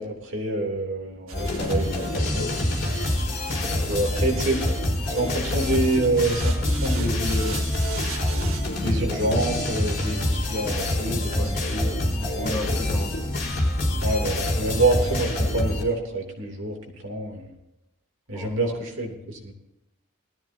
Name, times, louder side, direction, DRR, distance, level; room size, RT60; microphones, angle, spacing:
voice 1, 0.0-2.5 3.6-4.7 5.2-7.7 8.8-11.9 12.3-12.5 14.0-16.8 17.0-17.4 18.3-19.5, right 2 dB, 60° right, 1 dB, 3.1 m, -27 dB
sound 1, 1.3-15.8, left 1 dB, 45° left, 4.4 m, -26 dB
sound 2, 1.3-8.6, right 6 dB, 75° right, 2.0 m, -41 dB
voice 2, 3.4-4.1 11.2-11.6 12.1-13.3 18.3-18.8, left 2 dB, 20° left, -2 dB, 3.1 m, -37 dB
19.5 x 14.0 x 2.8 m, 0.87 s
head